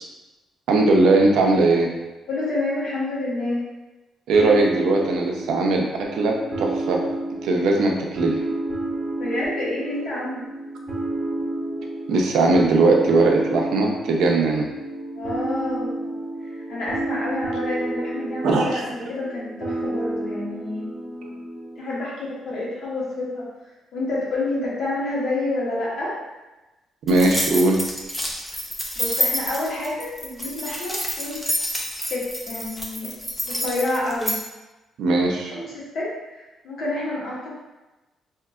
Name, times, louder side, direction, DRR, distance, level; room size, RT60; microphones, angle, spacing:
voice 1, 0.7-1.9 4.3-7.0 7.4-8.3 12.1-14.7 18.4-19.1 21.2-21.3 27.1-27.8 35.0-35.5, right 2 dB, 80° right, 0 dB, 0.6 m, -19 dB
voice 2, 2.3-3.6 9.2-10.5 15.1-16.2 16.4-20.9 21.7-23.4 23.9-26.1 28.9-31.4 32.1-33.1 33.4-34.3 35.5-37.5, left 2 dB, 75° left, -6 dB, 1.4 m, -28 dB
sound 1, 4.3-21.8, right 2 dB, 25° right, 0.9 m, -30 dB
sound 2, 27.1-34.4, equal, 10° left, 0.7 m, -28 dB
4.4 x 2.8 x 2.4 m, 1.1 s
cardioid pair, 90°, 0 cm